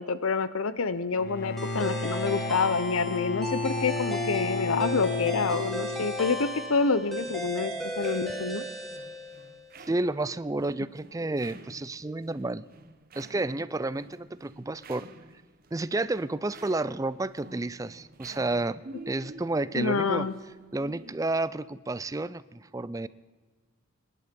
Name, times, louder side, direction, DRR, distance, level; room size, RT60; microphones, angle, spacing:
voice 1, 0.0-8.6 19.7-20.3, left 4 dB, 80° left, 14 dB, 0.7 m, -27 dB
Bowed string instrument, 1.2-6.4, left 4 dB, 50° left, 0.9 m, -33 dB
sound 1, 1.6-9.7, equal, ahead, 1.8 m, -35 dB
sound 2, 7.2-21.2, right 2 dB, 45° right, 1.0 m, -50 dB
voice 2, 9.9-12.6 13.1-15.1 15.7-18.8 19.1-20.3 20.7-23.1, right 2 dB, 15° right, 17 dB, 0.4 m, -31 dB
25.5 x 11.0 x 5.2 m, 1.4 s
head